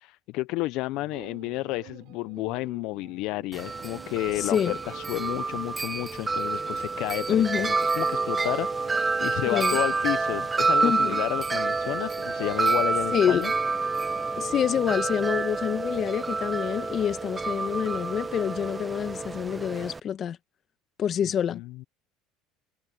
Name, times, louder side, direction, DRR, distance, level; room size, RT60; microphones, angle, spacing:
voice 1, 0.3-13.5 21.5-21.8, left 20 dB, 70° left, 0.5 m, -31 dB
sound 1, 0.9-15.5, right 23 dB, 75° right, 7.1 m, -48 dB
Wind chime, 3.5-20.0, right 3 dB, 20° right, 0.4 m, -28 dB
voice 2, 4.4-4.7 7.3-7.7 9.4-9.8 10.8-11.2 13.1-13.4 14.4-20.4 21.0-21.6, left 9 dB, 45° left, 1.5 m, -26 dB
supercardioid pair, 100°, 0 cm